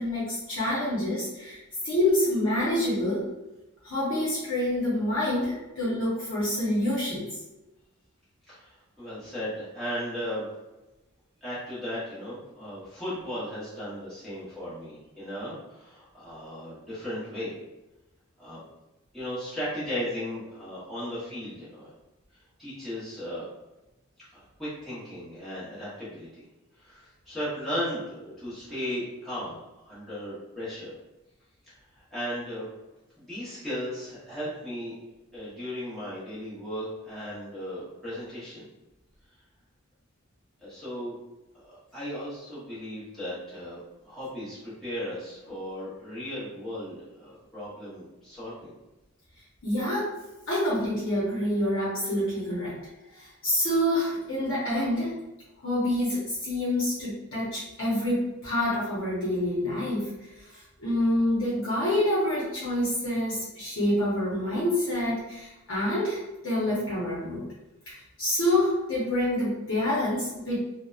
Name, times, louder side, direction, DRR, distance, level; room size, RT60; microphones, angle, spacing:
voice 1, 0.0-1.6 1.8-3.2 3.8-7.4 49.6-50.1 50.5-52.7 53.1-55.1 55.6-60.1 60.4-67.5 67.9-70.6, left 1 dB, 60° left, -8 dB, 0.7 m, -27 dB
voice 2, 8.5-10.5 11.4-17.5 18.4-18.6 19.1-21.9 22.3-23.5 24.3-26.5 26.7-30.9 31.9-32.7 33.2-35.0 35.3-38.7 40.6-41.2 41.5-48.7, equal, ahead, -13 dB, 0.8 m, -36 dB
2.7 x 2.0 x 2.3 m, 1.0 s
head